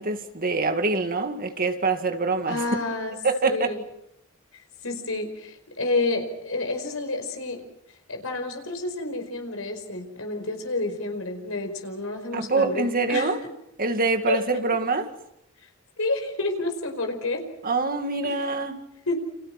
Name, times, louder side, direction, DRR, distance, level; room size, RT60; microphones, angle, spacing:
voice 1, 0.0-2.6 3.2-3.7 12.3-13.4 13.8-15.1 17.6-18.7, right 3 dB, 40° right, 2.2 m, -25 dB
voice 2, 2.5-3.2 3.4-3.8 4.5-7.6 8.1-13.3 14.3-14.8 16.0-17.4 18.2-18.5 19.1-19.2, left 2 dB, 70° left, 5.1 m, -29 dB
29.5 x 28.0 x 6.0 m
head